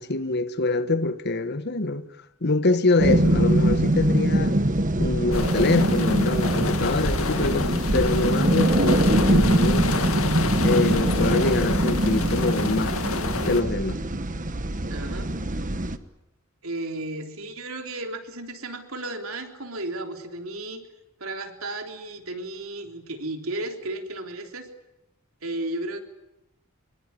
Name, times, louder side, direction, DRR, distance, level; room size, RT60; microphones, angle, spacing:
voice 1, 0.0-2.0 2.4-4.6 5.0-9.9 10.6-13.0 13.4-14.0, left 2 dB, 50° left, 1.3 m, -25 dB
sound 1, 3.0-16.0, right 1 dB, 40° right, 1.3 m, -23 dB
sound 2, 5.3-13.6, left 4 dB, 75° left, 2.1 m, -30 dB
voice 2, 14.9-15.3 16.6-20.8 21.2-24.7 25.4-26.0, right 2 dB, 75° right, 3.6 m, -34 dB
25.0 x 23.5 x 9.7 m
head